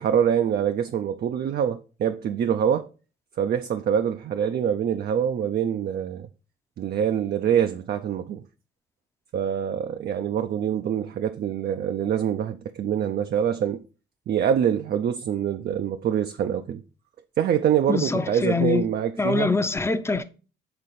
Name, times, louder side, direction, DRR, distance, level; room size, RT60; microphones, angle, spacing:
voice 1, 0.0-2.9 3.4-6.3 6.8-8.4 9.3-13.8 14.3-16.8 17.4-19.5, right 9 dB, 55° right, 0.5 m, -25 dB
voice 2, 17.9-18.8 19.2-20.2, left 3 dB, 15° left, 0.6 m, -24 dB
6.9 x 3.7 x 4.1 m
cardioid pair, 90°, 20 cm